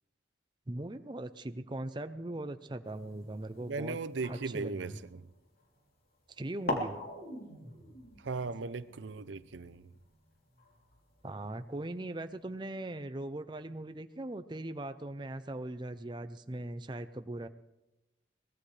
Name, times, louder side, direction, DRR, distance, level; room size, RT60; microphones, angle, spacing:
voice 1, 0.7-4.0 4.3-5.0 6.4-7.0 11.2-17.5, right 1 dB, 25° right, 0.5 m, -40 dB
sound 1, 2.9-5.8 6.3-6.4 6.7-11.3, left 1 dB, 55° left, 3.2 m, -43 dB
voice 2, 3.7-5.2 8.2-9.9, right 4 dB, 80° right, 0.6 m, -38 dB
22.5 x 18.5 x 3.3 m
head